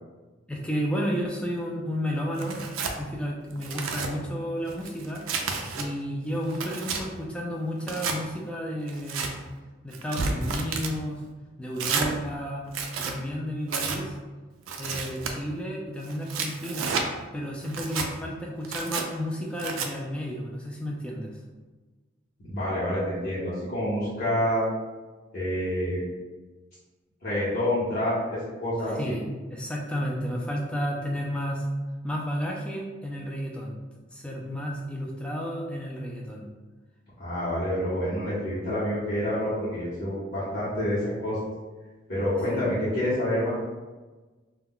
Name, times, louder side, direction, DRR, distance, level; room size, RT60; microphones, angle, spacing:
voice 1, 0.5-2.6 3.0-5.2 5.7-9.3 9.8-11.2 11.6-12.7 13.0-14.1 14.8-16.9 17.3-21.4 29.0-29.2 29.5-31.7 32.0-33.7 34.1-36.4 42.5-42.7, equal, 5° left, -2 dB, 0.3 m, -32 dB
Tearing, 2.4-3.0 3.5-4.1 4.7-5.9 6.3-7.0 7.8-8.2 8.9-9.3 9.9-10.9 11.8-12.1 12.7-13.2 13.7-14.0 14.7-15.3 16.1-17.1 17.6-18.1 18.6-19.0 19.6-19.9, right 5 dB, 90° right, 0.4 m, -31 dB
voice 2, 22.4-24.6 25.3-26.0 27.2-29.2 37.2-41.4 42.1-43.5, left 1 dB, 50° left, -10 dB, 0.9 m, -28 dB
2.2 x 2.1 x 3.6 m, 1.3 s
head